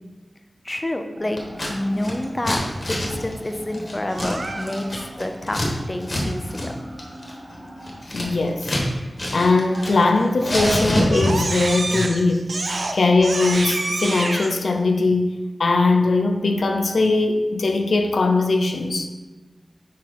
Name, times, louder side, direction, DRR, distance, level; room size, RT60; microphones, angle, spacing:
voice 1, 0.6-1.4 1.7-2.6 2.9-6.8, left 1 dB, 25° left, 5 dB, 0.6 m, -28 dB
sound 1, 1.2-8.1, equal, 55° right, 1.3 m, -41 dB
Scissors, 1.4-1.7 2.0-5.7 6.0-6.2 6.5-6.7 7.0-8.9 9.2-10.1 10.4-11.5, left 1 dB, 50° left, 1.6 m, -26 dB
Crying sobbing, 4.1-5.0 9.7-10.0 10.4-14.5, right 2 dB, 75° right, 0.6 m, -28 dB
voice 2, 8.1-8.7 9.3-12.5 12.9-19.1, left 3 dB, 85° left, 4 dB, 0.4 m, -20 dB
6.2 x 4.2 x 4.1 m, 1.2 s
wide cardioid pair, 50°, 0 cm